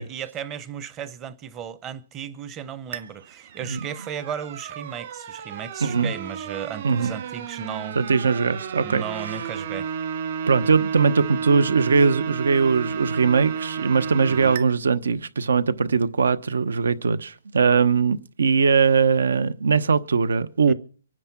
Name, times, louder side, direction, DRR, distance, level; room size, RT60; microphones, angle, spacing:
voice 1, 0.0-8.0 8.8-9.9 14.3-14.5 20.7-20.8, right 8 dB, 15° right, 0.7 m, -35 dB
sound 1, 2.9-14.6, right 7 dB, 50° right, 2.1 m, -32 dB
voice 2, 5.8-6.1 6.8-7.1 8.0-9.4 10.5-20.7, right 5 dB, 85° right, 1.1 m, -21 dB
24.5 x 9.8 x 6.0 m
hypercardioid pair, 165°, 0 cm